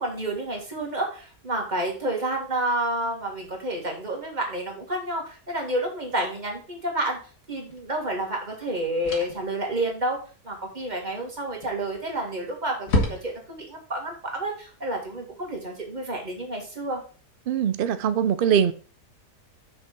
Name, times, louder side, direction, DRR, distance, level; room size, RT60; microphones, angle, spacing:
voice 1, 0.0-7.2 7.5-10.2 10.4-17.0, right 1 dB, 30° right, 0 dB, 2.1 m, -29 dB
sound 1, 7.7-7.9 9.0-9.5 11.6-12.1 12.4-12.5 12.9-13.6, left 1 dB, 65° left, 2.1 m, -28 dB
voice 2, 17.5-18.7, right 8 dB, 90° right, 12 dB, 0.4 m, -22 dB
6.4 x 5.8 x 4.5 m, 0.38 s
omnidirectional pair, 1.6 m